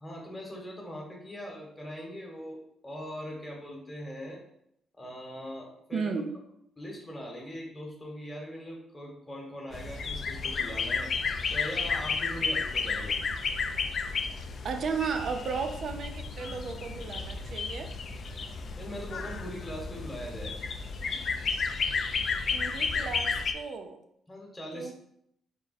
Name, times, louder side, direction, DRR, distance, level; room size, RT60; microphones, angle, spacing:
voice 1, 0.0-4.4 5.0-6.1 6.8-11.1 11.5-13.2 18.8-20.6 24.3-24.9, equal, 15° left, -1 dB, 1.1 m, -41 dB
voice 2, 5.9-6.3 14.6-17.9 22.5-24.0 24.7-24.9, right 5 dB, 60° right, 7 dB, 0.4 m, -34 dB
sound 1, 9.7-23.5, left 5 dB, 50° left, 0.3 m, -32 dB
3.6 x 2.2 x 4.0 m, 0.74 s
cardioid pair, 90°, 0 cm